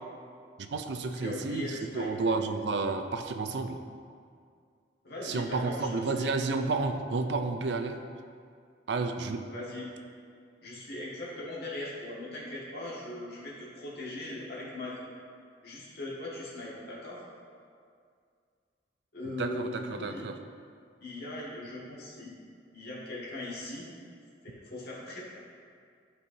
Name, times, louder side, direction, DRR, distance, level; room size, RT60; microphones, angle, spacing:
voice 1, 0.6-3.8 5.2-8.0 8.9-9.5 19.4-20.3, right 3 dB, 70° right, 7 dB, 0.5 m, -31 dB
voice 2, 1.1-2.1 5.0-6.3 9.5-9.9 10.6-15.0 15.6-17.2 19.1-20.2 21.0-22.3 22.7-23.9 24.4-25.2, left 2 dB, 60° left, -6 dB, 1.7 m, -39 dB
11.0 x 4.5 x 2.7 m, 2.2 s
head